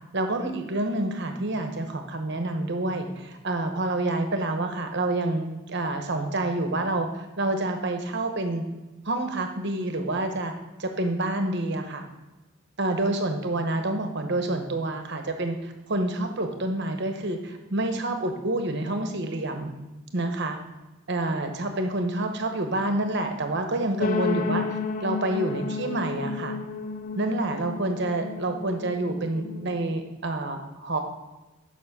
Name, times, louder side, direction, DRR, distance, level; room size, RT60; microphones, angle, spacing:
voice 1, 0.1-8.6 9.0-10.5 10.8-12.0 12.8-19.7 20.1-20.6 21.1-26.6 27.2-31.0, right 2 dB, 50° right, 5 dB, 1.0 m, -28 dB
sound 1, 24.0-29.9, left 4 dB, 35° left, 0.3 m, -32 dB
7.2 x 5.9 x 6.0 m, 1.1 s
head